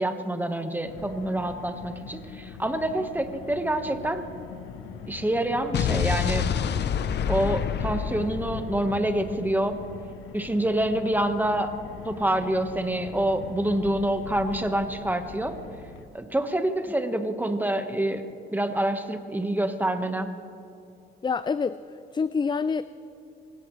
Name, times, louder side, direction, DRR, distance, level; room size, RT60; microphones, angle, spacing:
voice 1, 0.0-4.3 5.1-6.5 7.3-9.8 10.3-11.7 12.0-15.5 16.1-18.2 18.5-20.3, right 1 dB, 10° right, 7 dB, 1.4 m, -27 dB
Car, 0.9-16.0, left 6 dB, 90° left, 1.2 m, -43 dB
Explosion, 5.7-9.8, left 8 dB, 60° left, 0.7 m, -28 dB
voice 2, 21.2-21.8 22.1-22.8, left 5 dB, 25° left, 14 dB, 0.4 m, -26 dB
25.0 x 17.0 x 3.3 m, 2.7 s
cardioid pair, 90°, 20 cm